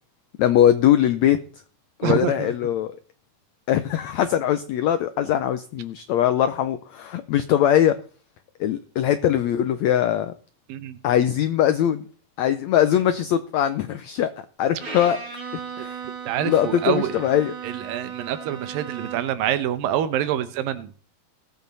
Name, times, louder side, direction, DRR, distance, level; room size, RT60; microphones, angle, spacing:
voice 1, 0.4-1.4 2.0-2.9 3.7-8.0 8.6-10.3 11.0-12.0 12.4-14.3 14.6-15.2 15.8-16.0 16.4-17.5, left 10 dB, 85° left, 1.5 m, -21 dB
voice 2, 2.0-2.5 10.7-11.0 16.3-17.2 17.6-20.9, right 10 dB, 80° right, 2.6 m, -26 dB
Bowed string instrument, 14.8-19.5, right 6 dB, 55° right, 6.0 m, -36 dB
19.0 x 8.3 x 4.1 m
omnidirectional pair, 4.1 m